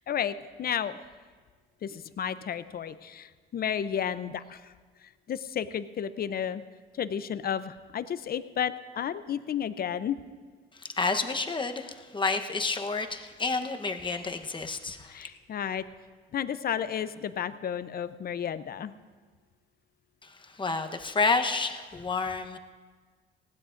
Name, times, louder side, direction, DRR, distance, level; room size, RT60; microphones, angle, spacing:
voice 1, 0.1-1.0 1.8-4.7 5.3-6.6 6.9-10.2 15.1-15.8 16.3-18.9, left 8 dB, 50° left, 13 dB, 0.6 m, -32 dB
voice 2, 11.0-15.2 20.2-22.6, left 4 dB, 25° left, 6 dB, 1.0 m, -30 dB
20.0 x 16.5 x 2.6 m, 1.5 s
cardioid pair, 90°, 20 cm